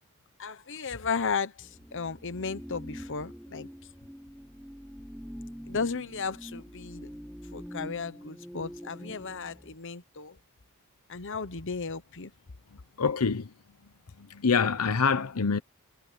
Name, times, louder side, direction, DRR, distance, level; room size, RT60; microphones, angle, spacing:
voice 1, 0.4-3.7 5.7-7.1 7.5-10.4 11.1-12.3, left 5 dB, 60° left, 1.0 m, -34 dB
sound 1, 1.6-9.8, equal, ahead, 5.7 m, -45 dB
voice 2, 13.0-13.5 14.4-15.6, left 5 dB, 85° left, 0.9 m, -25 dB
head